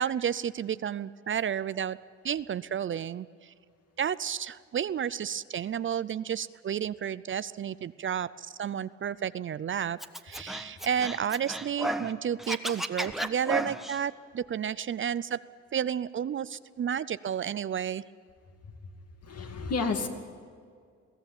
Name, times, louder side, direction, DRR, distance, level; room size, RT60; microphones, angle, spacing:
voice 1, 0.0-2.0 2.2-3.5 4.0-10.0 10.2-15.4 15.7-18.0, right 8 dB, 40° right, 16 dB, 0.5 m, -31 dB
Scratching (performance technique), 10.0-12.1 12.4-14.0, right 1 dB, ahead, 1.2 m, -33 dB
voice 2, 19.2-20.1, left 4 dB, 55° left, 5 dB, 2.6 m, -31 dB
22.0 x 16.0 x 9.0 m, 2.1 s
cardioid pair, 90°, 30 cm